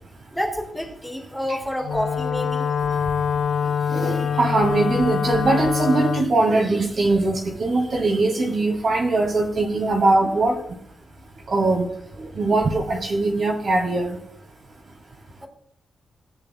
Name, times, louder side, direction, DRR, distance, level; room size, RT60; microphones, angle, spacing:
voice 1, 0.3-2.7, equal, ahead, -1 dB, 3.2 m, -28 dB
Wind instrument woodwind instrument, 1.8-6.3, left 7 dB, 70° left, 0.6 m, -24 dB
voice 2, 3.9-10.6 11.5-11.9 12.4-14.2, right 2 dB, 55° right, -1 dB, 2.2 m, -21 dB
18.0 x 9.8 x 2.2 m, 0.70 s
cardioid pair, 95°, 0 cm